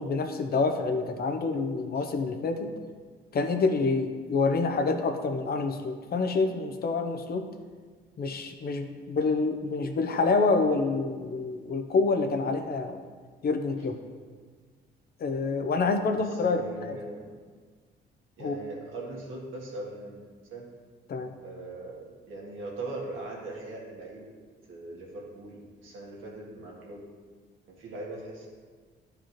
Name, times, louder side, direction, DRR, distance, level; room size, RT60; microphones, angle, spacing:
voice 1, 0.0-2.7 3.3-7.5 8.2-13.0 13.4-14.0 15.2-17.0 18.4-18.6 21.1-21.3, left 4 dB, 50° left, 6 dB, 0.7 m, -27 dB
voice 2, 16.0-17.4 18.4-20.6 21.4-24.3 24.7-27.1 27.7-28.5, right 2 dB, 85° right, -3 dB, 1.8 m, -40 dB
11.0 x 4.9 x 3.0 m, 1.5 s
cardioid pair, 90°, 20 cm